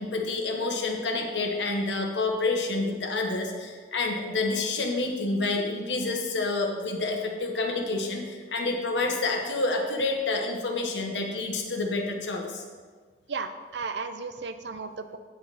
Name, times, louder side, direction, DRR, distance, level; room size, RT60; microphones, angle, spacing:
voice 1, 0.0-12.6, left 3 dB, 90° left, 2 dB, 1.3 m, -28 dB
voice 2, 13.3-15.2, right 4 dB, 75° right, 9 dB, 0.6 m, -34 dB
9.6 x 6.8 x 4.2 m, 1.5 s
head